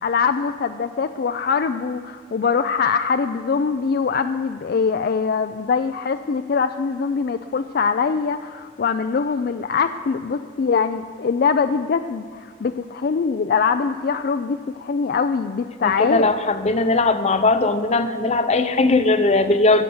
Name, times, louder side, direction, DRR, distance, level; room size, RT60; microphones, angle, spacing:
voice 1, 0.0-16.3, left 5 dB, 60° left, 9 dB, 0.4 m, -23 dB
voice 2, 15.8-19.8, left 2 dB, 40° left, 10 dB, 0.7 m, -19 dB
13.5 x 8.1 x 7.8 m, 2.1 s
head